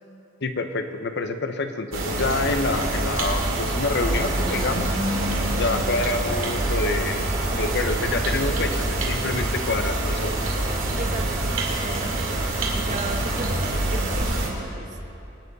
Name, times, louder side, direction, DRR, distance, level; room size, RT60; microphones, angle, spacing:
voice 1, 0.4-4.9 5.5-7.3 7.5-10.3, left 3 dB, 60° left, 8 dB, 0.8 m, -27 dB
sound 1, 1.9-14.5, right 1 dB, 75° right, 2.5 m, -25 dB
voice 2, 11.0-11.5 11.8-15.0, right 2 dB, 40° right, 4 dB, 1.0 m, -36 dB
23.5 x 9.2 x 4.1 m, 3.0 s
head